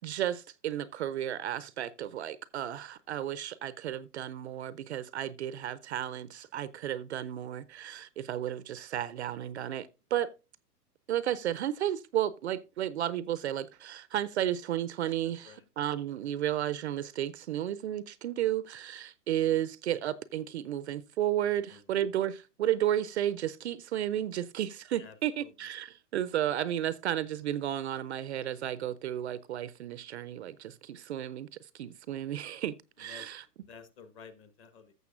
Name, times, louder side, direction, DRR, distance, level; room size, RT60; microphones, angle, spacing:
voice 1, 0.0-10.3 11.1-31.5 31.7-33.4, right 11 dB, 45° right, 0.5 m, -33 dB
voice 2, 33.6-34.9, left 6 dB, 25° left, 1.1 m, -52 dB
14.5 x 6.9 x 2.4 m
hypercardioid pair, 130°, 49 cm